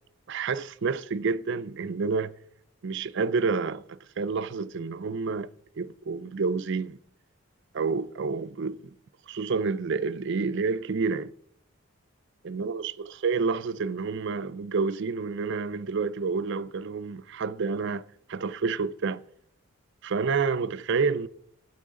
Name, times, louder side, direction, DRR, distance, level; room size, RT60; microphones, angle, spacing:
voice 1, 0.3-2.3 2.8-5.5 5.8-7.0 7.7-8.9 9.3-11.3 12.4-18.0 18.3-19.2 20.0-21.3, right 4 dB, 50° right, 0.4 m, -29 dB
13.0 x 8.6 x 3.7 m
head